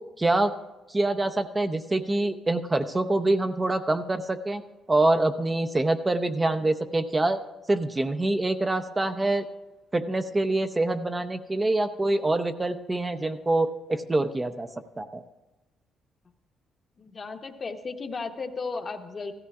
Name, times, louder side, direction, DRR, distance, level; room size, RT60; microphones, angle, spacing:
voice 1, 0.2-0.5 0.9-4.6 4.9-7.4 7.7-9.4 9.9-14.7 15.0-15.2, right 2 dB, 20° right, 8 dB, 0.5 m, -25 dB
voice 2, 17.0-19.3, left 4 dB, 40° left, 6 dB, 0.9 m, -35 dB
15.5 x 14.0 x 2.4 m, 1.0 s
cardioid pair, 90°, 0 cm